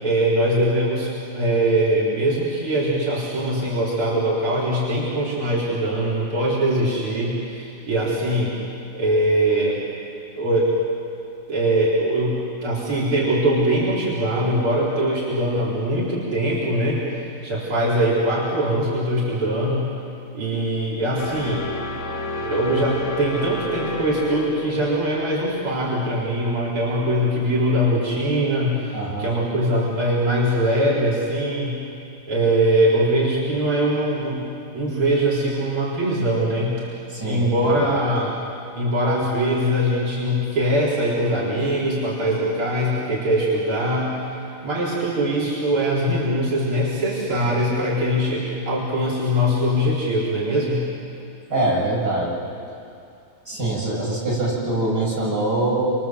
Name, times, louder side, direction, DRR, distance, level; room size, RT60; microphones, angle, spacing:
voice 1, 0.0-8.6 8.9-9.8 10.3-10.8 11.5-19.9 20.3-21.7 22.3-31.8 32.3-34.4 34.7-36.9 37.2-38.3 38.7-44.2 44.6-50.9, right 1 dB, 80° right, -6 dB, 4.8 m, -22 dB
sound 1, 21.2-27.2, left 2 dB, 65° left, 2.5 m, -33 dB
voice 2, 28.9-29.3 37.1-37.7 51.5-52.4 53.5-56.0, right 2 dB, 50° right, -6 dB, 8.3 m, -23 dB
29.5 x 26.0 x 7.6 m, 2.5 s
omnidirectional pair, 2.3 m